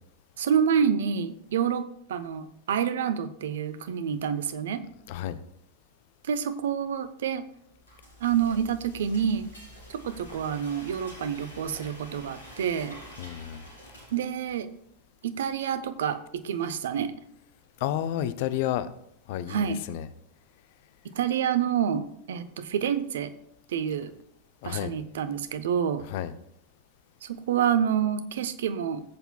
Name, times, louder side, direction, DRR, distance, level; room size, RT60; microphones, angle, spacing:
voice 1, 0.4-1.8 2.1-4.8 6.3-7.4 8.2-9.5 9.9-13.0 14.1-14.7 15.2-17.1 19.5-19.8 21.2-23.3 23.7-24.1 24.6-26.0 27.2-29.0, right 8 dB, 60° right, 11 dB, 0.7 m, -28 dB
Frying (food), 7.5-14.6, equal, 70° left, 2.8 m, -48 dB
voice 2, 13.2-13.7 17.8-18.9 19.3-20.1 24.6-24.9 26.0-26.3, left 12 dB, 50° left, 14 dB, 0.5 m, -31 dB
16.0 x 8.0 x 2.3 m, 0.73 s
figure-of-eight pair, 90°, 0 cm